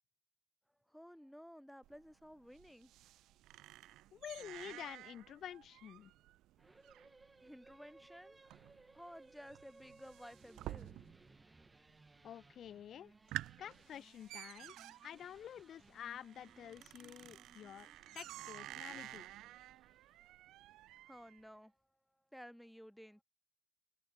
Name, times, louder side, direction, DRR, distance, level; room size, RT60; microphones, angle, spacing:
voice 1, 0.9-2.9 3.3-3.4 7.1-8.4 8.8-11.0 21.0-21.9 22.3-23.2, equal, ahead, 1.1 m, -55 dB
sound 1, 1.8-11.4 11.7-12.3 12.7-12.8 13.1-21.4, right 15 dB, 90° right, 0.8 m, -51 dB
voice 2, 4.1-6.1 12.2-13.1 13.6-14.8 15.0-17.9 18.1-19.3, left 10 dB, 65° left, 0.4 m, -49 dB
sound 2, 6.6-20.2, right 2 dB, 20° right, 2.1 m, -64 dB
cardioid pair, 90°, 0 cm